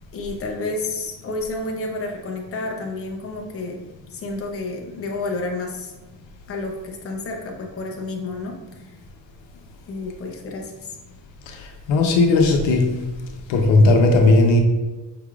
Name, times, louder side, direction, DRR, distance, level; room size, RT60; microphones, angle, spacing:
voice 1, 0.1-3.8 4.1-5.9 6.5-9.0 9.9-10.9, left 2 dB, 30° left, 1 dB, 0.7 m, -30 dB
voice 2, 11.5-12.9 13.5-14.6, left 2 dB, 75° left, 3 dB, 0.9 m, -16 dB
5.6 x 3.5 x 2.4 m, 1.2 s
cardioid pair, 155°, 46 cm